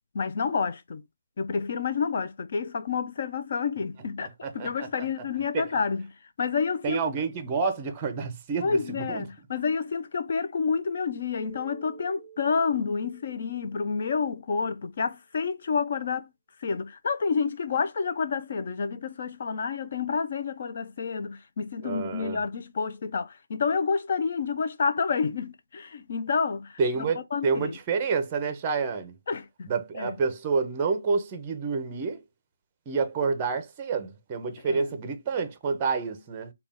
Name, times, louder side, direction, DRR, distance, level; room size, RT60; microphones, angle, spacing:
voice 1, 0.1-1.0 1.4-6.1 6.4-7.0 8.6-16.3 16.6-27.8 29.3-30.2 34.7-34.9, left 5 dB, 45° left, 0.5 m, -29 dB
voice 2, 4.2-4.9 5.5-5.6 6.8-9.3 21.8-22.4 26.8-29.1 29.7-32.2 32.9-36.5, right 5 dB, 20° right, 0.6 m, -28 dB
Keyboard (musical), 11.4-14.6, right 8 dB, 10° left, 1.2 m, -51 dB
3.8 x 2.3 x 3.5 m
hypercardioid pair, 165°, 0 cm